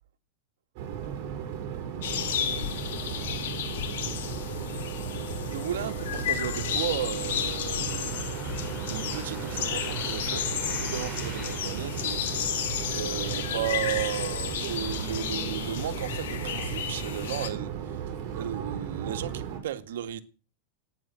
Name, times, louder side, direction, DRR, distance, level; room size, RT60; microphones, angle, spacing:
sound 1, 0.8-19.6, right 8 dB, 45° right, 6.8 m, -36 dB
sound 2, 2.0-17.5, left 9 dB, 80° left, 3.6 m, -33 dB
sound 3, 4.8-15.9, right 3 dB, 10° right, 3.8 m, -48 dB
voice 1, 5.5-8.3 8.6-12.5 12.9-18.0 18.3-20.2, right 11 dB, 85° right, 1.9 m, -35 dB
15.0 x 9.9 x 7.6 m
supercardioid pair, 145°, 0 cm